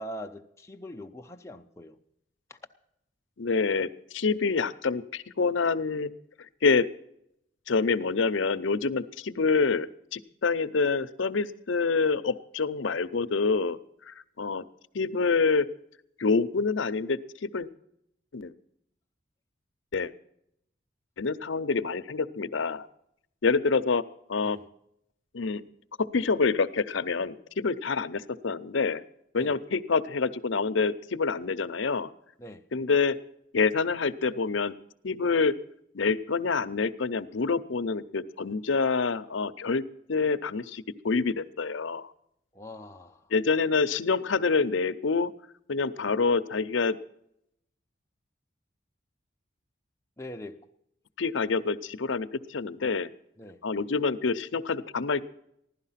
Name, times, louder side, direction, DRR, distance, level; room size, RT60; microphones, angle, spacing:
voice 1, 0.0-2.0 2.5-2.6 24.4-24.6 29.4-29.6 32.4-32.7 42.5-43.3 50.2-50.7 53.4-53.6, equal, 15° left, 0.7 m, -42 dB
voice 2, 3.4-6.1 6.6-6.9 7.7-13.8 14.1-14.6 14.9-15.7 16.2-17.7 18.3-18.5 19.9-20.1 21.2-22.9 23.4-24.0 24.3-24.6 25.3-25.6 26.0-29.0 29.3-32.1 32.7-33.2 33.5-34.7 35.0-35.5 35.9-39.8 40.1-42.1 43.3-45.3 45.7-47.0 51.2-53.1 53.6-55.2, left 4 dB, 75° left, 0.7 m, -27 dB
16.0 x 11.5 x 5.7 m
head